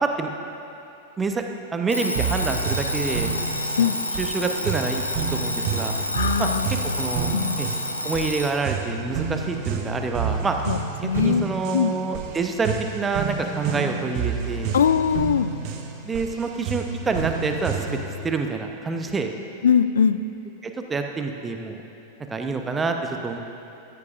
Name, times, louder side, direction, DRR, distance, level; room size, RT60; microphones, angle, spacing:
voice 1, 1.7-3.3 3.8-3.9 4.2-5.9 6.4-6.5 6.8-7.7 8.0-10.6 11.0-14.7 16.0-18.0 18.2-19.3 20.6-21.8 22.3-23.0 23.2-23.4, right 4 dB, 15° right, 4 dB, 0.8 m, -27 dB
Alarm, 1.9-8.6, left 1 dB, 85° left, 0.8 m, -29 dB
sound 1, 2.1-18.2, right 6 dB, 45° right, 1.0 m, -30 dB
voice 2, 6.1-7.0 7.3-7.6 10.7-11.5 11.7-11.9 14.7-15.5 19.6-20.2, left 7 dB, 65° left, 13 dB, 0.3 m, -21 dB
14.0 x 13.5 x 2.5 m, 2.9 s
figure-of-eight pair, 90°, 0 cm